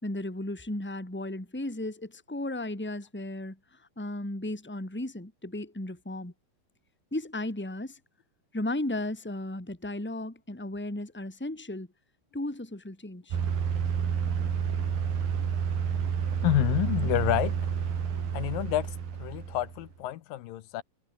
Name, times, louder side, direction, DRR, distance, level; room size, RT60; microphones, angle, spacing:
voice 1, 0.0-3.6 4.0-6.3 7.1-8.0 8.5-11.9 12.3-13.4, left 1 dB, 5° left, 3.8 m, -35 dB
sound 1, 13.3-19.9, right 7 dB, 65° right, 4.9 m, -29 dB
voice 2, 16.4-17.6 18.3-18.9 19.2-20.8, left 14 dB, 70° left, 2.5 m, -28 dB
omnidirectional pair, 4.5 m